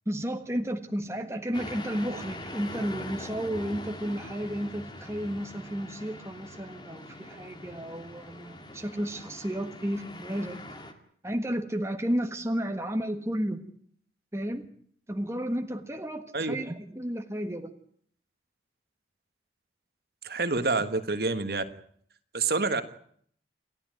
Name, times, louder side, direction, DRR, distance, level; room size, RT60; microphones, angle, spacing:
voice 1, 0.0-10.6 11.2-13.7 14.3-14.7 15.1-17.7, equal, 15° right, 5 dB, 1.5 m, -32 dB
sound 1, 1.5-10.9, left 1 dB, 25° left, 2.2 m, -43 dB
voice 2, 20.2-21.6 22.3-22.8, right 3 dB, 60° right, 10 dB, 1.6 m, -27 dB
29.0 x 13.0 x 9.3 m, 0.63 s
head